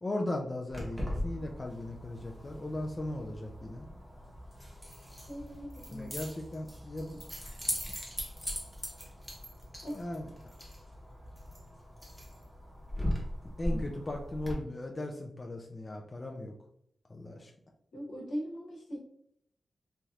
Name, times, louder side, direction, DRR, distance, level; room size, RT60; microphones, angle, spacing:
voice 1, 0.0-3.9 5.9-7.2 9.9-10.3 13.4-16.5 17.1-17.5, left 1 dB, 25° left, 1 dB, 0.3 m, -37 dB
Keys jangling, 0.7-14.5, equal, ahead, 0.8 m, -40 dB
voice 2, 5.3-6.1 9.8-10.1 13.7-13.8 17.9-19.0, equal, 85° left, -3 dB, 1.1 m, -40 dB
3.2 x 2.8 x 2.4 m, 0.69 s
wide cardioid pair, 145°, 0 cm